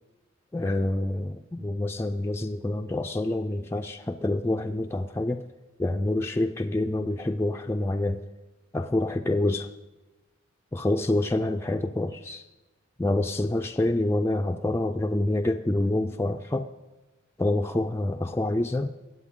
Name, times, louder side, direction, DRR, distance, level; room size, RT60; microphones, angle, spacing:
voice 1, 0.5-5.4 5.8-8.2 8.7-9.7 10.7-12.4 13.0-16.7 17.4-18.9, left 1 dB, 10° left, 3 dB, 0.3 m, -27 dB
21.5 x 7.9 x 3.7 m, 1.1 s
head